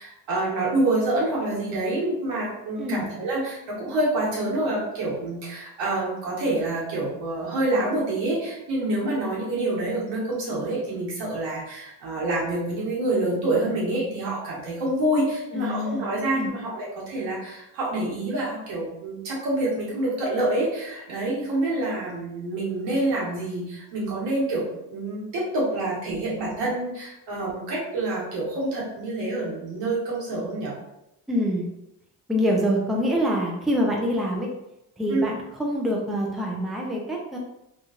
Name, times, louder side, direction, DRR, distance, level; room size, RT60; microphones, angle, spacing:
voice 1, 0.0-30.7 35.1-35.3, right 2 dB, 75° right, -5 dB, 1.4 m, -27 dB
voice 2, 2.8-3.1 15.5-16.5 31.3-31.7 32.3-34.5 35.0-35.3 35.6-37.4, equal, ahead, -1 dB, 0.5 m, -25 dB
3.0 x 2.5 x 2.5 m, 0.87 s
hypercardioid pair, 60°, 45 cm